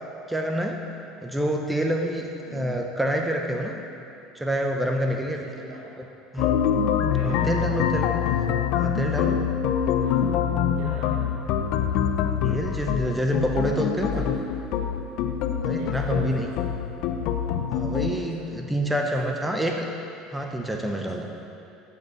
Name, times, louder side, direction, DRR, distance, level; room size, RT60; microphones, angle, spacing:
voice 1, 0.3-0.8 1.2-3.8 4.3-5.4 6.3-6.6 7.2-8.1 8.8-9.4 12.4-14.2 15.7-16.5 17.7-19.8 20.3-21.3, equal, 5° right, 2 dB, 0.6 m, -27 dB
voice 2, 5.3-6.0 6.8-7.8 9.9-10.3 10.8-11.3 14.0-14.4 15.8-16.6 18.2-18.5 18.9-19.7 20.9-21.2, right 3 dB, 80° right, -6 dB, 2.6 m, -43 dB
sound 1, 6.4-18.1, left 8 dB, 60° left, 0.5 m, -25 dB
7.5 x 6.6 x 7.6 m, 2.7 s
cardioid pair, 150°, 0 cm